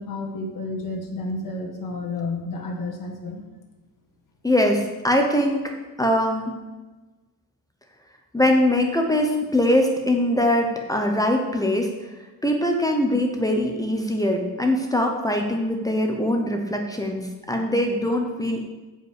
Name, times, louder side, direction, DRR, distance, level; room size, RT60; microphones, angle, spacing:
voice 1, 0.0-3.4, left 2 dB, 60° left, 0 dB, 1.9 m, -31 dB
voice 2, 4.4-6.5 8.3-11.9 12.4-18.7, left 1 dB, 10° left, 2 dB, 0.9 m, -22 dB
9.1 x 5.6 x 8.1 m, 1.2 s
wide cardioid pair, 175°, 37 cm